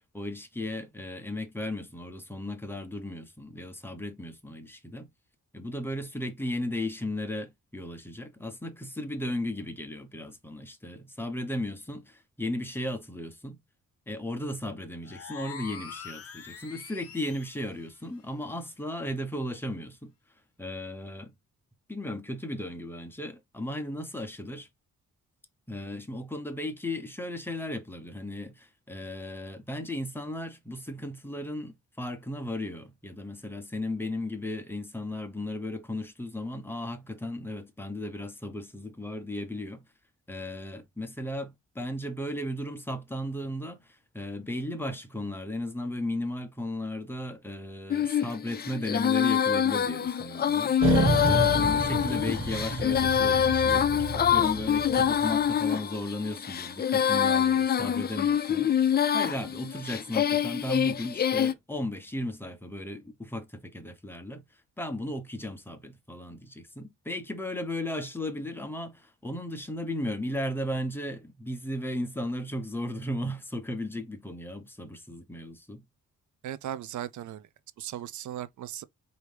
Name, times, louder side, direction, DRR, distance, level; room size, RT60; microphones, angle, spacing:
voice 1, 0.0-5.1 5.5-13.6 14.1-20.1 20.6-21.3 21.9-24.7 25.7-39.8 40.3-64.4 64.8-75.8, left 1 dB, 5° left, 0.8 m, -35 dB
sound 1, 15.0-17.7, left 7 dB, 50° left, 0.8 m, -44 dB
Female singing, 47.9-61.5, left 9 dB, 35° left, 0.4 m, -25 dB
sound 2, 50.8-55.4, right 2 dB, 40° right, 1.6 m, -29 dB
voice 2, 76.4-77.5 77.8-78.8, right 11 dB, 70° right, 0.6 m, -37 dB
4.7 x 2.7 x 3.3 m
wide cardioid pair, 135°, 31 cm